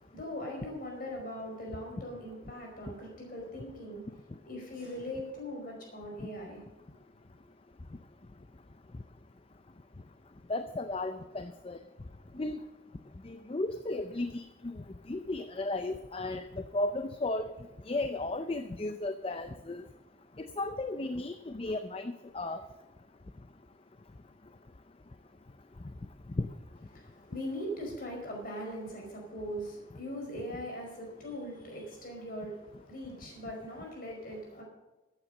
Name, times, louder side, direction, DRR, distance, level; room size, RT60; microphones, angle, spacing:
voice 1, 0.0-4.0 4.4-6.6 6.9-7.0 26.9-34.6, equal, 45° left, 0 dB, 4.8 m, -40 dB
voice 2, 10.5-11.8 12.3-12.6 13.2-14.7 15.1-17.5 17.9-19.8 20.4-22.6 26.4-26.5, left 2 dB, 30° left, 9 dB, 0.5 m, -34 dB
14.5 x 8.9 x 6.5 m, 1.1 s
head